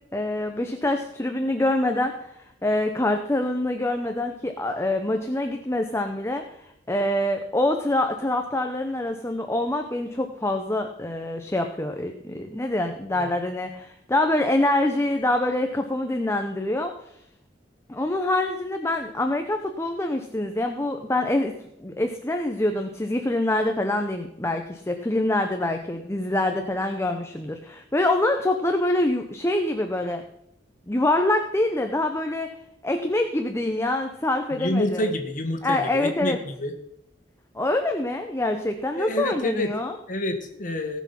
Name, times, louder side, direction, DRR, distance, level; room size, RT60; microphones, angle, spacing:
voice 1, 0.1-2.3 2.6-6.4 6.9-16.9 17.9-21.5 21.8-30.2 30.9-32.5 32.8-35.0 35.6-36.4 37.5-39.9, left 1 dB, 15° left, 5 dB, 0.9 m, -25 dB
voice 2, 34.5-36.7 39.0-39.7 40.1-41.0, left 1 dB, 50° left, 5 dB, 1.8 m, -28 dB
18.0 x 6.3 x 5.9 m, 0.77 s
head